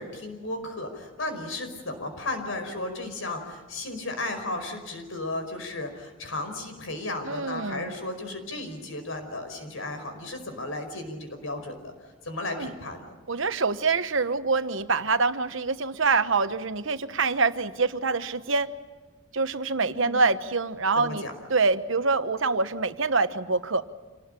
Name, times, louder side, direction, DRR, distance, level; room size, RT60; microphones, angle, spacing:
voice 1, 0.0-13.0 19.8-20.2 20.9-21.3, left 2 dB, 75° left, 6 dB, 5.1 m, -34 dB
voice 2, 7.2-7.9 12.6-12.7 13.3-18.7 19.3-21.2 21.5-23.8, right 4 dB, 70° right, 11 dB, 1.1 m, -25 dB
27.0 x 19.0 x 9.0 m, 1.2 s
head